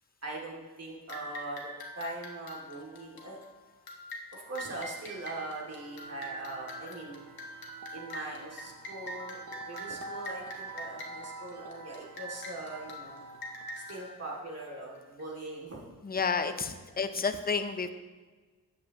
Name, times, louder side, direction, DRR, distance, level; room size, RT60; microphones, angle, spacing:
voice 1, 0.2-3.4 4.3-7.2 7.9-9.4 9.7-13.2 13.8-15.8, right 2 dB, 45° right, -3 dB, 2.3 m, -41 dB
sound 1, 1.1-15.2, equal, 80° left, 1.4 m, -45 dB
sound 2, 4.8-14.2, right 2 dB, 60° right, 0.7 m, -48 dB
voice 2, 16.0-17.9, left 5 dB, 25° left, 8 dB, 0.6 m, -30 dB
13.5 x 8.6 x 2.9 m, 1.4 s
wide cardioid pair, 120°, 36 cm